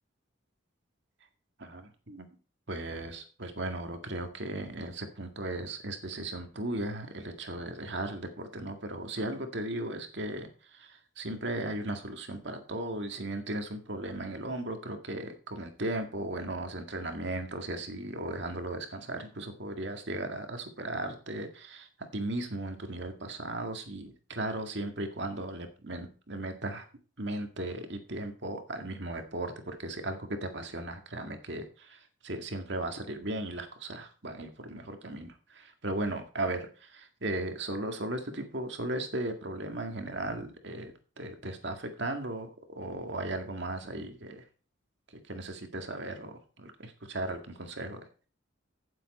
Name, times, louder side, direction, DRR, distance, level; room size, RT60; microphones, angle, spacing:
voice 1, 1.6-2.3 2.7-26.9 27.2-42.5 42.8-44.4 45.1-48.0, right 1 dB, 65° right, 5 dB, 2.0 m, -36 dB
15.0 x 7.6 x 4.3 m, 0.38 s
head